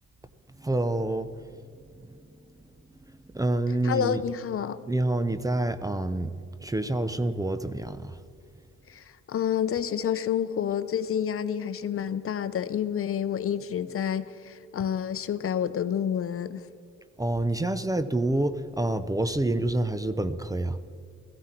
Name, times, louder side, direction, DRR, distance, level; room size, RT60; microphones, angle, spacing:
voice 1, 0.6-1.3 2.1-2.2 3.3-4.2 4.9-6.3 6.6-8.2 17.2-20.8, right 2 dB, 10° right, 0.6 m, -27 dB
voice 2, 3.8-4.8 8.9-16.7, left 8 dB, 45° left, 0.7 m, -29 dB
17.5 x 15.0 x 4.5 m
cardioid pair, 90°, 30 cm